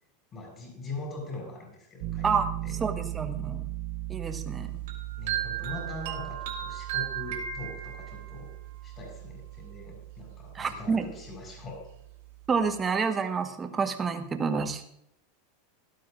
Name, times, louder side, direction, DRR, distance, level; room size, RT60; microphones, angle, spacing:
voice 1, 0.3-2.3 2.6-2.8 5.2-8.5 8.8-11.9, left 2 dB, 30° left, -1 dB, 5.7 m, -41 dB
Piano, 2.0-12.8, right 16 dB, 50° right, 0.6 m, -39 dB
voice 2, 2.8-3.6 4.1-4.8 10.5-11.1 12.5-14.8, right 5 dB, 20° right, 6 dB, 1.2 m, -28 dB
sound 1, 4.9-8.4, right 10 dB, 75° right, 2.5 m, -35 dB
17.5 x 12.0 x 2.6 m, 0.74 s
supercardioid pair, 140°, 0 cm